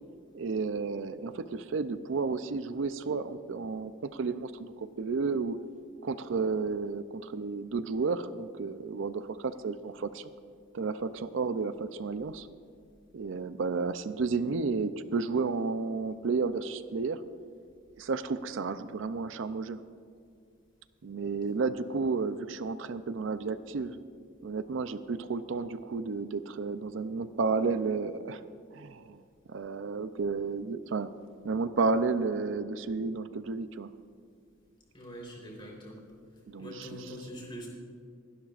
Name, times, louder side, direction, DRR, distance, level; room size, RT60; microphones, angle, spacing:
voice 1, 0.3-5.6 6.0-10.3 10.7-12.5 13.1-17.2 18.0-19.8 21.0-24.0 24.4-28.4 28.7-29.2 29.5-31.1 31.4-33.9 36.5-37.0, right 4 dB, 70° right, 12 dB, 0.5 m, -32 dB
voice 2, 34.9-36.0 36.6-37.7, equal, 25° left, -2 dB, 3.6 m, -43 dB
27.0 x 12.0 x 2.5 m, 2.2 s
head